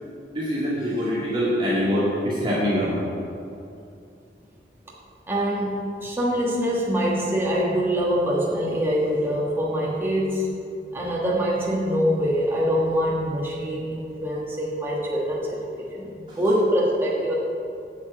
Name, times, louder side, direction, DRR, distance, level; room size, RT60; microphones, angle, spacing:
voice 1, 0.3-2.9 16.3-16.4, equal, 30° right, -9 dB, 2.4 m, -24 dB
voice 2, 5.3-10.5 10.9-17.3, equal, 15° right, -5 dB, 1.3 m, -24 dB
8.7 x 6.2 x 7.8 m, 2.6 s
head